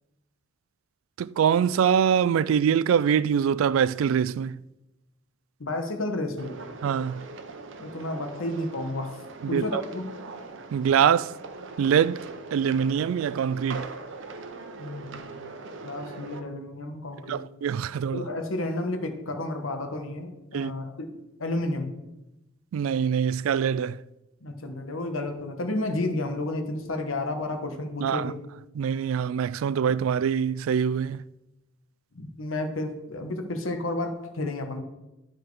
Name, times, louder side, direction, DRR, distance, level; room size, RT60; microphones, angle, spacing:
voice 1, 1.2-4.6 6.8-7.3 9.4-9.8 10.7-11.4 11.8-12.3 12.5-13.9 17.3-18.3 20.5-20.7 22.7-24.0 28.0-28.3 28.7-31.3, right 8 dB, 85° right, 0.3 m, -24 dB
voice 2, 5.6-6.6 7.8-9.2 9.5-10.0 14.8-15.3 15.8-17.4 18.1-21.1 21.4-21.9 24.4-28.3 32.1-34.8, left 2 dB, 85° left, 1.2 m, -31 dB
sound 1, 6.4-16.4, right 3 dB, 65° right, 0.8 m, -41 dB
11.5 x 4.6 x 4.8 m
head